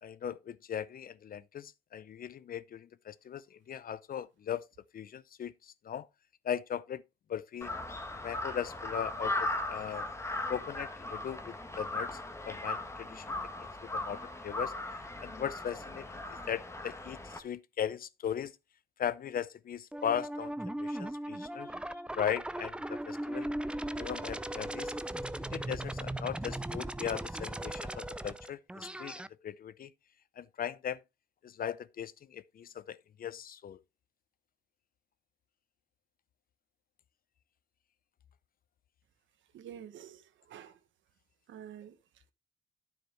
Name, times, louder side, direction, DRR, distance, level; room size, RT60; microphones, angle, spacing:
voice 1, 0.0-4.7 4.9-6.1 6.4-7.0 7.3-7.7 8.2-10.1 10.5-12.2 12.5-13.7 13.9-14.7 15.2-18.5 19.0-21.7 22.2-23.5 24.0-24.9 25.5-29.9 30.4-31.0 31.4-33.8, left 9 dB, 45° left, 0.6 m, -38 dB
Crow, 7.6-17.4, left 2 dB, 15° left, 1.4 m, -38 dB
sound 1, 19.9-29.3, right 1 dB, 5° right, 0.4 m, -38 dB
voice 2, 39.5-40.8 41.5-42.0, right 9 dB, 75° right, 1.2 m, -48 dB
9.5 x 7.2 x 3.4 m
cardioid pair, 90°, 20 cm